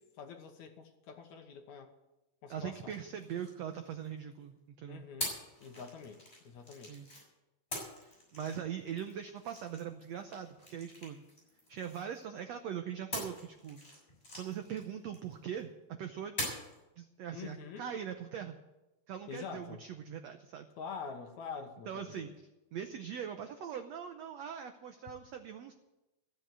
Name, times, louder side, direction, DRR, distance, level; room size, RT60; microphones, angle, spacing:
voice 1, 0.2-1.9 2.4-3.0 4.9-6.9 17.3-17.9 19.3-19.8 20.8-22.3, left 6 dB, 65° left, 5 dB, 2.3 m, -46 dB
voice 2, 2.5-5.0 6.9-7.1 7.9-11.2 11.7-13.8 14.3-16.4 17.0-18.6 19.1-20.7 21.9-22.3 22.7-25.7, right 8 dB, 85° right, 7 dB, 1.5 m, -41 dB
sound 1, 2.9-4.3 5.2-7.2 7.7-12.4 13.1-15.6 16.4-16.8, left 1 dB, 15° left, 6.6 m, -44 dB
15.0 x 8.2 x 9.1 m, 0.98 s
omnidirectional pair, 4.1 m